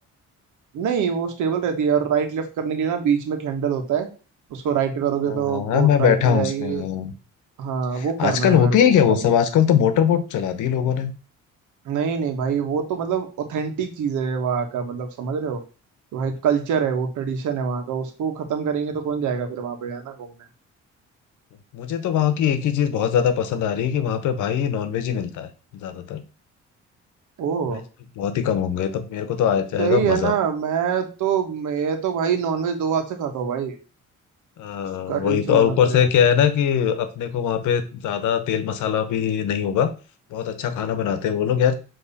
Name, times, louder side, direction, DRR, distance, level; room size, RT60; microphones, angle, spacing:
voice 1, 0.7-4.1 4.5-6.9 7.6-9.0 11.8-15.6 16.1-20.3 27.4-27.8 29.8-33.7 35.1-36.0, right 7 dB, 80° right, 5 dB, 1.4 m, -25 dB
voice 2, 5.2-7.1 7.9-11.1 21.7-26.2 27.7-27.8 28.2-30.3 34.6-39.9 40.3-41.8, left 8 dB, 85° left, 10 dB, 1.0 m, -21 dB
7.1 x 3.2 x 4.1 m, 0.34 s
cardioid pair, 90°, 30 cm